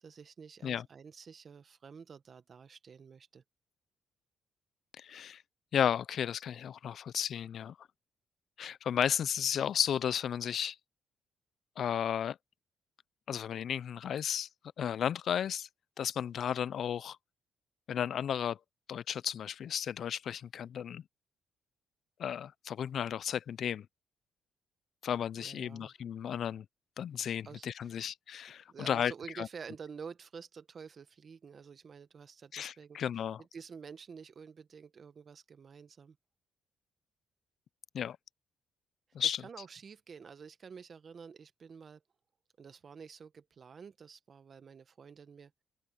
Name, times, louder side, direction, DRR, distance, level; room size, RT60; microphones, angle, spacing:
voice 1, 0.0-3.4 25.4-25.9 27.4-28.0 28.7-33.0 33.4-36.2 39.2-42.0 42.6-45.5, right 6 dB, 45° right, 1.4 m, -49 dB
voice 2, 5.0-5.4 5.7-7.8 8.6-10.8 11.8-12.4 13.3-14.5 14.8-15.7 16.0-17.2 17.9-18.6 18.9-21.0 22.2-23.9 25.0-26.7 27.0-29.1 29.4-29.5 32.5-33.4 37.9-38.2 39.1-39.4, left 9 dB, 60° left, 0.4 m, -33 dB
open air
cardioid pair, 90°, 0 cm